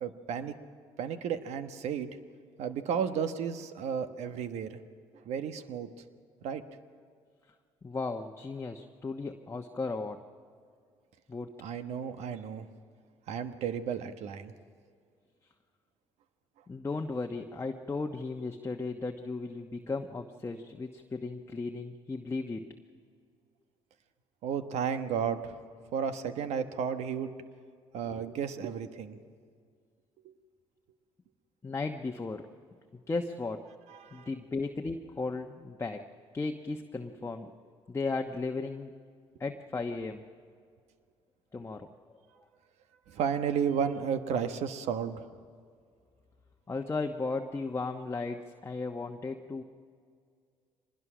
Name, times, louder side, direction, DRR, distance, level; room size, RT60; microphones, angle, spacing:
voice 1, 0.0-0.5 1.0-2.1 2.6-4.8 5.2-5.9 6.4-6.6 11.6-12.7 13.3-14.5 24.4-25.6 25.9-27.3 27.9-29.2 30.2-30.3 33.9-34.3 43.1-45.3, right 7 dB, 70° right, 9 dB, 1.2 m, -33 dB
voice 2, 7.8-10.2 11.3-11.5 16.7-22.7 31.6-32.5 33.1-33.6 34.1-36.0 36.3-37.5 37.9-39.0 39.4-40.2 41.5-41.9 46.7-49.6, left 3 dB, 25° left, 3 dB, 1.1 m, -35 dB
24.0 x 20.0 x 6.2 m, 2.2 s
supercardioid pair, 65°, 12 cm